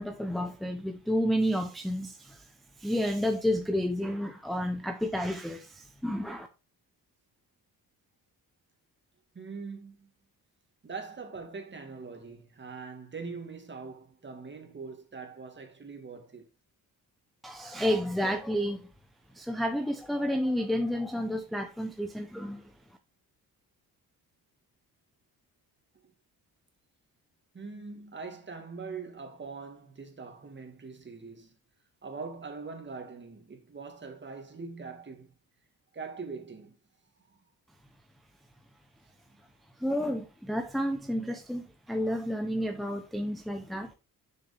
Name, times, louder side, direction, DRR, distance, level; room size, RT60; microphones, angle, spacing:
voice 1, 0.0-2.5 2.8-6.5 17.4-18.9 19.3-22.7 39.8-43.9, equal, ahead, 0.7 m, -31 dB
voice 2, 9.3-10.1 10.8-16.5 27.5-31.6 32.0-35.3 35.9-36.8 37.3-37.4, right 4 dB, 30° right, 2.0 m, -42 dB
6.9 x 6.5 x 3.4 m
cardioid pair, 120°, 38 cm